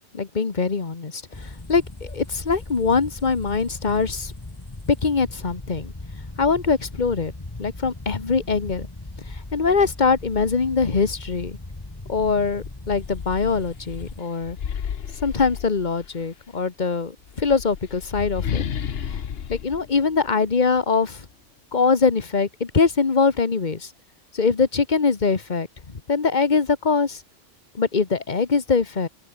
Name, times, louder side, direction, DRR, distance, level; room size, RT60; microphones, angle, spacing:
voice 1, 0.1-4.3 5.0-5.9 6.4-7.3 7.6-8.9 9.3-11.6 12.1-14.6 15.2-18.7 19.1-19.2 19.5-21.2 21.7-23.9 24.3-27.2 27.7-29.1, left 4 dB, 40° left, 1.5 m, -23 dB
sound 1, 1.3-14.2, left 2 dB, 20° left, 1.6 m, -38 dB
sound 2, 12.1-12.2 12.6-16.2 17.2-20.8, left 8 dB, 60° left, 1.1 m, -32 dB
open air
omnidirectional pair, 1.2 m